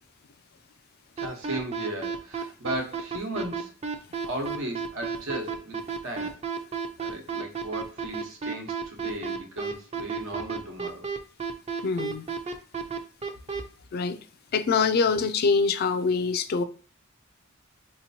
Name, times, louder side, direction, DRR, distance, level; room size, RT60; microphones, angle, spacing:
sound 1, 1.2-13.6, right 6 dB, 30° right, 0.5 m, -31 dB
voice 1, 1.2-3.7 4.2-6.4 7.0-11.1, right 1 dB, 80° right, 1.1 m, -36 dB
voice 2, 11.8-12.2 13.9-14.2 14.5-16.6, left 5 dB, 50° left, 0.3 m, -24 dB
4.2 x 2.9 x 2.7 m
head